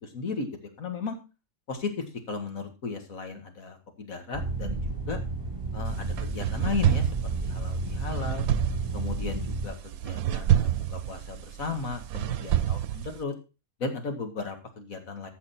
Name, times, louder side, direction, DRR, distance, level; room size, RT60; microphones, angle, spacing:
voice 1, 0.0-0.5 0.8-1.2 1.7-5.2 5.7-8.5 8.9-13.3 13.8-15.3, left 4 dB, 75° left, 5 dB, 2.4 m, -35 dB
sound 1, 4.3-9.7, right 2 dB, 40° right, 4.4 m, -32 dB
sound 2, 5.9-13.2, right 10 dB, 90° right, 1.1 m, -28 dB
14.0 x 5.8 x 4.3 m, 0.29 s
omnidirectional pair, 1.5 m